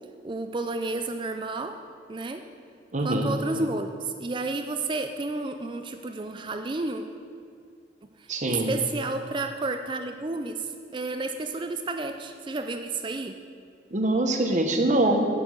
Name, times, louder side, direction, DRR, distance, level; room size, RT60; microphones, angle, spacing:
voice 1, 0.2-1.8 2.1-2.4 3.0-7.0 8.5-13.3, right 3 dB, 25° right, 7 dB, 0.4 m, -31 dB
voice 2, 2.9-3.3 8.3-8.7 13.9-15.3, right 1 dB, 40° right, 3 dB, 1.0 m, -24 dB
8.3 x 6.8 x 8.1 m, 2.3 s
head